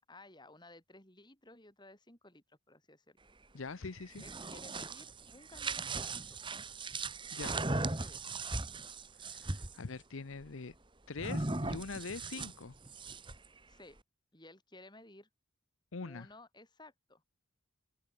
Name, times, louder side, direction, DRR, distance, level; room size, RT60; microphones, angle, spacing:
voice 1, 0.1-3.2 4.2-6.4 7.4-8.4 13.7-14.0 14.3-15.3 16.0-17.2, left 2 dB, 20° left, 5.4 m, -56 dB
voice 2, 3.5-4.2 7.3-7.5 9.3-10.7 11.1-12.7 15.9-16.3, left 4 dB, 70° left, 0.8 m, -43 dB
sound 1, 4.0-9.8 11.2-13.5, right 3 dB, 25° right, 1.6 m, -38 dB
open air
head